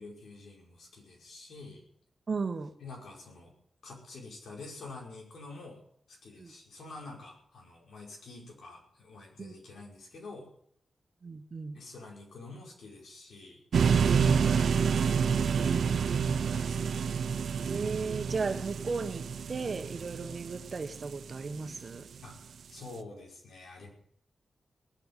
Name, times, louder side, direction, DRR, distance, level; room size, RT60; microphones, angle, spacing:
voice 1, 0.0-1.8 2.8-3.5 3.8-5.8 6.1-10.5 11.7-17.2 22.2-23.9, left 3 dB, 85° left, -1 dB, 5.6 m, -48 dB
voice 2, 2.3-2.7 6.4-6.5 9.4-9.5 11.2-11.8 17.7-22.1, right 4 dB, 45° right, 7 dB, 1.5 m, -35 dB
sound 1, 13.7-21.8, right 6 dB, 80° right, 0.7 m, -28 dB
19.0 x 8.1 x 9.2 m, 0.66 s
wide cardioid pair, 125°, 0 cm